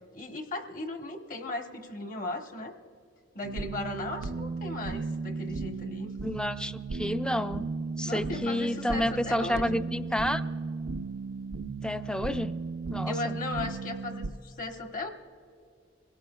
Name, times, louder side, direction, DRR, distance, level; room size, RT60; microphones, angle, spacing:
voice 1, 0.0-2.7 3.3-6.1 8.0-9.8 13.1-15.1, left 2 dB, 45° left, 4 dB, 1.1 m, -37 dB
sound 1, 3.4-14.3, right 4 dB, 80° right, 0.5 m, -35 dB
voice 2, 6.2-7.6 8.0-10.4 11.8-12.5 12.9-13.4, left 1 dB, 5° left, 10 dB, 0.4 m, -30 dB
25.0 x 17.0 x 2.3 m, 2.2 s
head